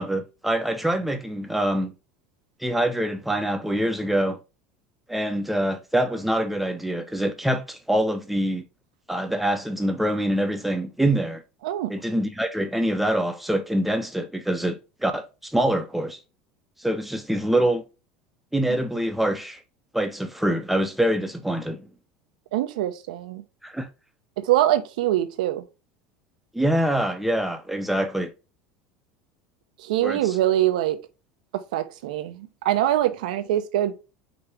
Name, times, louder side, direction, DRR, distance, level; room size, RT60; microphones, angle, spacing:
voice 1, 0.0-1.9 2.6-4.4 5.1-8.6 9.1-11.4 11.9-16.2 16.8-17.8 18.5-19.6 19.9-21.9 23.6-23.9 26.5-28.3 30.0-30.4, right 1 dB, 5° right, 0.7 m, -25 dB
voice 2, 22.5-23.4 24.4-25.6 29.8-31.0 31.7-33.9, right 13 dB, 85° right, 0.7 m, -23 dB
5.2 x 2.9 x 3.3 m
supercardioid pair, 115°, 4 cm